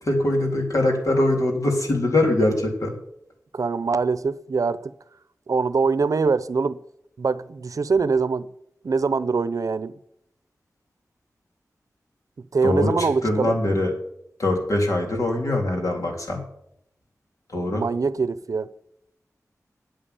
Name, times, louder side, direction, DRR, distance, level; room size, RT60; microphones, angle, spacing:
voice 1, 0.0-2.9 12.6-13.9 14.4-16.4 17.5-17.9, left 1 dB, 65° left, 3.5 m, -22 dB
voice 2, 3.5-4.9 5.5-6.8 7.2-8.5 8.8-9.9 12.5-13.5 17.7-18.7, right 4 dB, 70° right, 0.7 m, -23 dB
9.5 x 8.9 x 8.4 m
wide cardioid pair, 70°, 6 cm